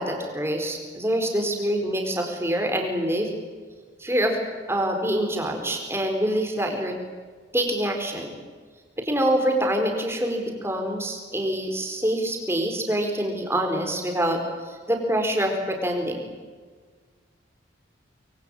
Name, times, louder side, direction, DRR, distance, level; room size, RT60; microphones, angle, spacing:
voice 1, 0.0-3.3 4.0-4.4 4.7-7.0 7.5-8.3 9.0-16.3, right 1 dB, 15° right, 3 dB, 4.2 m, -25 dB
25.0 x 23.5 x 9.1 m, 1.5 s
head